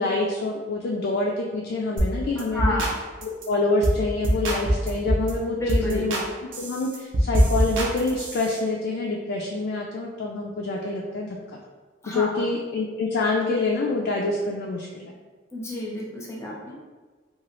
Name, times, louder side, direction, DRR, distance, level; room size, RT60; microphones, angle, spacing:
voice 1, 0.0-2.8 3.2-6.2 6.6-11.4 12.1-15.1, left 2 dB, 60° left, -1 dB, 0.3 m, -26 dB
sound 1, 2.0-2.1 2.4-2.9 3.2-3.4 3.8-4.0 4.2-5.3 5.7-6.2 6.5-8.5, equal, 75° right, 0.6 m, -23 dB
voice 2, 2.5-2.9 5.5-6.1 12.0-12.3 15.5-16.8, left 1 dB, 15° left, -4 dB, 0.6 m, -30 dB
2.9 x 2.3 x 2.9 m, 1.4 s
head